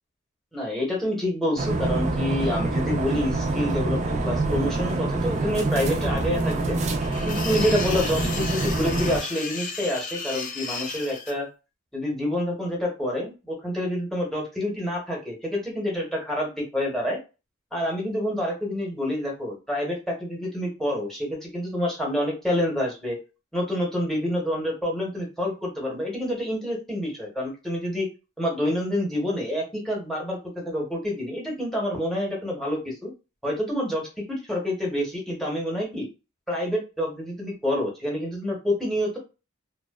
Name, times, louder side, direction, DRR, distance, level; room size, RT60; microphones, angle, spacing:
voice 1, 0.5-6.8 7.2-11.5 11.9-17.2 17.7-23.2 23.5-28.1 28.4-33.1 33.4-36.1 36.5-39.2, left 1 dB, ahead, -1 dB, 0.8 m, -28 dB
sound 1, 1.6-9.2, right 2 dB, 35° right, 0.4 m, -26 dB
sound 2, 7.0-11.3, left 5 dB, 40° left, 0.4 m, -34 dB
2.6 x 2.1 x 2.2 m, 0.30 s
head